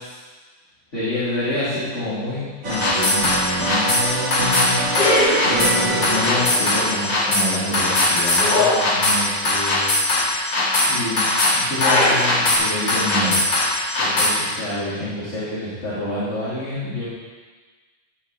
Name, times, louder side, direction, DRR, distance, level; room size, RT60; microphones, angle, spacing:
voice 1, 0.9-4.8 5.4-9.9 10.8-13.4 14.0-17.1, left 1 dB, 25° left, -13 dB, 3.2 m, -27 dB
sound 1, 2.6-9.8, right 2 dB, 40° right, 2.1 m, -27 dB
sound 2, 2.7-14.3, left 2 dB, 40° left, 2.6 m, -20 dB
12.5 x 8.3 x 4.2 m, 1.4 s
omnidirectional pair, 3.4 m